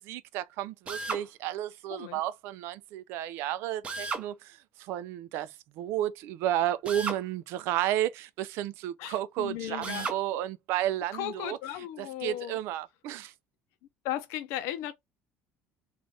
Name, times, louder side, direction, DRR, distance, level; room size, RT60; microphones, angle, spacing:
voice 1, 0.0-11.6 12.0-13.3, right 12 dB, 70° right, 0.4 m, -32 dB
Drill, 0.9-1.3 3.8-4.3 6.9-7.2 9.8-10.2, right 4 dB, 25° right, 0.7 m, -34 dB
voice 2, 1.9-2.2 9.0-10.1 11.1-12.6 14.0-14.9, left 12 dB, 80° left, 0.7 m, -36 dB
2.6 x 2.4 x 3.3 m
cardioid pair, 150°, 4 cm